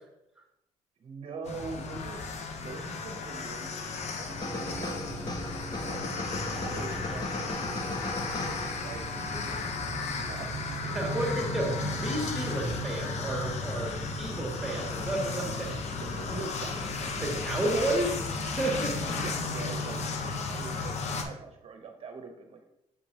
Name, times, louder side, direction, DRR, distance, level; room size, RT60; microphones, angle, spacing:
voice 1, 1.0-2.3 2.6-5.2 5.8-8.3 8.8-9.1 10.1-10.7 15.9-16.7 17.0-17.4 18.6-18.7 19.1-20.0 20.5-22.6, right 4 dB, 50° right, 3 dB, 0.8 m, -43 dB
sound 1, 1.4-21.2, left 3 dB, 60° left, 0.9 m, -34 dB
sound 2, 4.3-15.0, right 1 dB, 10° left, 1.5 m, -42 dB
sound 3, 4.4-9.2, left 2 dB, 30° left, 1.2 m, -38 dB
voice 2, 10.9-16.4 16.8-18.2 18.5-19.1, right 1 dB, 5° right, -2 dB, 2.6 m, -32 dB
7.5 x 5.2 x 2.9 m, 0.87 s
cardioid pair, 90°, 13 cm